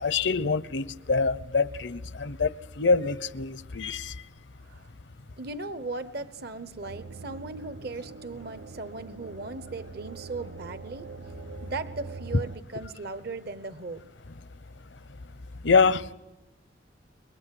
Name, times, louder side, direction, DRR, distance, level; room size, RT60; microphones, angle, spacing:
voice 1, 0.0-2.5 2.8-4.1 15.6-16.1, left 4 dB, 70° left, 0.9 m, -25 dB
voice 2, 5.4-11.1 11.6-14.0, right 3 dB, 60° right, 1.0 m, -37 dB
sound 1, 6.9-12.6, right 4 dB, 85° right, 0.9 m, -43 dB
29.5 x 23.0 x 7.7 m
head